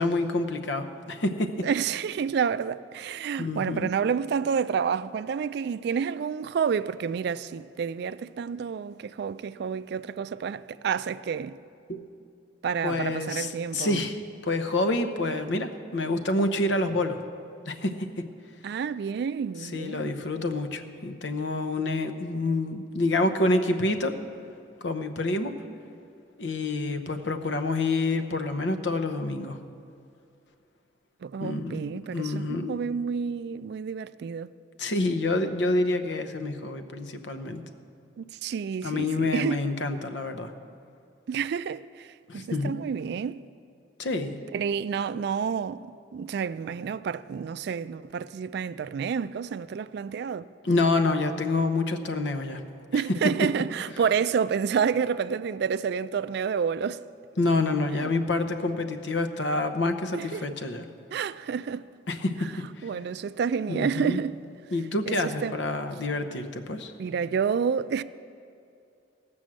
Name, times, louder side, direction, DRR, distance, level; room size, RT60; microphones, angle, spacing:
voice 1, 0.0-1.6 3.4-3.9 11.9-12.0 12.8-17.2 17.7-18.1 19.6-24.2 24.8-25.5 26.4-29.6 31.4-31.8 32.1-32.7 34.8-37.6 38.8-40.5 42.3-42.7 44.0-44.4 50.6-52.6 57.4-60.8 62.1-62.9 63.7-64.2 64.7-66.9, left 2 dB, 70° left, 0.8 m, -27 dB
voice 2, 1.6-11.6 12.6-14.0 18.6-20.3 31.2-34.5 38.2-39.5 41.3-43.4 44.5-50.5 52.9-57.0 57.9-58.1 60.1-60.5 61.1-61.9 62.8-64.4 65.1-65.5 67.0-68.0, right 6 dB, 60° right, 0.3 m, -29 dB
16.5 x 6.2 x 7.5 m
head